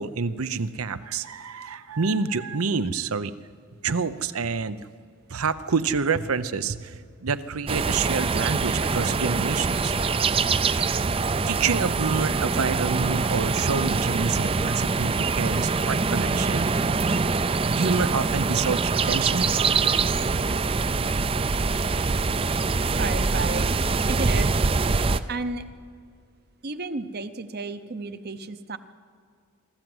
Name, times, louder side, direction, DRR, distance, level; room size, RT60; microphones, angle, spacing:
voice 1, 0.0-3.3 3.8-4.9 5.3-9.9 11.5-16.7 17.7-19.6, right 5 dB, 85° right, 14 dB, 0.8 m, -28 dB
sound 1, 7.7-25.2, right 4 dB, 25° right, 0.4 m, -24 dB
voice 2, 23.0-24.7 25.3-25.6 26.6-28.8, right 3 dB, 45° right, 11 dB, 0.8 m, -32 dB
24.0 x 13.5 x 7.9 m, 2.2 s
head